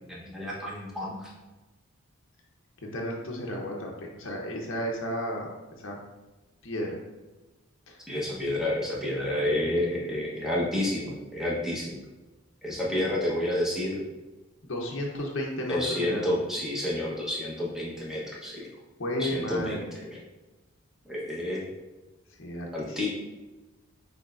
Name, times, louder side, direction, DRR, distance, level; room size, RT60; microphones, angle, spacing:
voice 1, 0.1-1.3 8.1-12.0 12.6-14.0 15.7-18.7 19.1-20.0 21.1-21.6 22.7-23.1, left 1 dB, ahead, -6 dB, 0.9 m, -30 dB
voice 2, 2.9-6.0 6.6-7.0 7.9-8.0 14.7-16.3 19.0-20.0 22.4-23.1, equal, 60° left, 0 dB, 0.7 m, -33 dB
6.3 x 3.3 x 2.4 m, 1.1 s
head